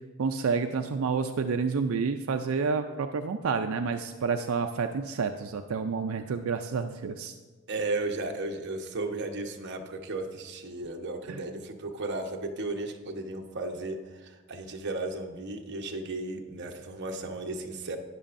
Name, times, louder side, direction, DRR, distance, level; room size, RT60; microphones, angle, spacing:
voice 1, 0.2-7.3 11.3-11.4, right 5 dB, 85° right, 7 dB, 0.4 m, -29 dB
voice 2, 7.7-18.0, right 2 dB, 55° right, 3 dB, 1.0 m, -35 dB
12.5 x 9.8 x 2.6 m, 1.4 s
head